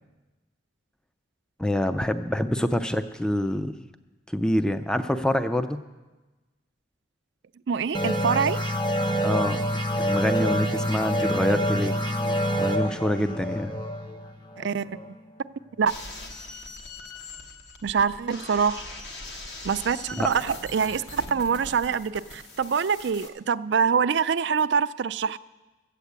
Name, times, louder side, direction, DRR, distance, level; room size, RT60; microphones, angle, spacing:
voice 1, 1.6-3.8 4.3-5.8 9.2-12.0 12.6-13.7 20.2-20.3, left 1 dB, 5° left, 10 dB, 0.4 m, -26 dB
voice 2, 7.7-8.6 14.6-15.0 15.8-15.9 17.8-18.8 19.6-25.4, right 6 dB, 60° right, 14 dB, 0.4 m, -25 dB
sound 1, 7.9-15.2, equal, 20° left, 0.7 m, -27 dB
sound 2, 15.9-23.3, left 2 dB, 60° left, 1.3 m, -41 dB
14.0 x 8.4 x 8.1 m, 1.2 s
head